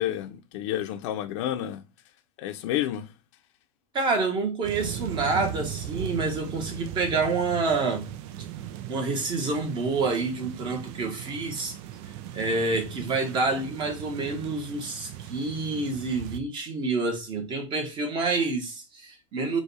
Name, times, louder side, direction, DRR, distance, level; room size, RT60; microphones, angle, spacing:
voice 1, 0.0-1.8 2.4-3.1, left 12 dB, 60° left, 0.6 m, -30 dB
voice 2, 3.9-8.1 8.9-11.8 12.3-19.6, right 3 dB, 25° right, 1.1 m, -28 dB
sound 1, 4.6-16.4, right 10 dB, 50° right, 0.5 m, -38 dB
4.8 x 2.3 x 4.1 m
supercardioid pair, 145°, 18 cm